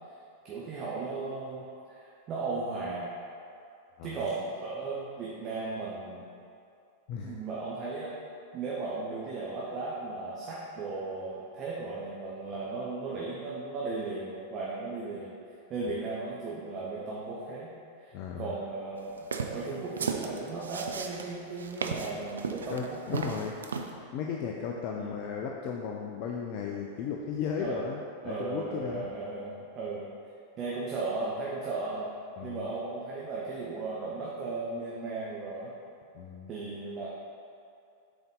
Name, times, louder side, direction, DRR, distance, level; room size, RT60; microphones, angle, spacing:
voice 1, 0.4-3.2 4.0-6.2 7.2-8.1 8.5-15.3 15.7-17.7 18.0-23.4 24.9-25.1 27.6-27.9 28.2-30.1 30.6-32.1 32.4-35.7 36.5-37.1, right 3 dB, 30° right, -5 dB, 0.9 m, -36 dB
voice 2, 18.1-18.5 22.7-23.6 24.1-29.1 32.4-32.7 36.1-36.5, left 6 dB, 45° left, 0 dB, 0.4 m, -35 dB
sound 1, 19.2-23.9, right 5 dB, 70° right, 0.4 m, -35 dB
6.8 x 4.1 x 3.7 m, 2.5 s
figure-of-eight pair, 90°, 0 cm